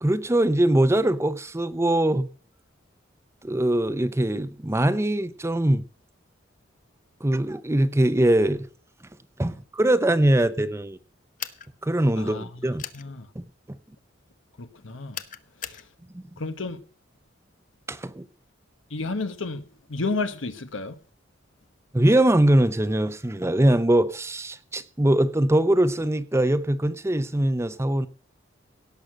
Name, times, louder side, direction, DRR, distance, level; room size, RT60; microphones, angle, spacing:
voice 1, 0.0-2.3 3.4-5.8 7.2-8.7 9.4-11.0 11.8-12.8 17.9-18.2 21.9-28.1, right 1 dB, 15° right, 0.6 m, -22 dB
sound 1, 11.4-11.7 12.8-13.0 15.1-15.8, left 9 dB, 45° left, 1.0 m, -36 dB
voice 2, 12.2-12.5 12.9-13.3 14.6-15.2 15.6-15.8 16.4-16.8 18.9-19.6 19.9-21.0, left 3 dB, 85° left, 1.1 m, -31 dB
17.5 x 6.5 x 7.5 m
head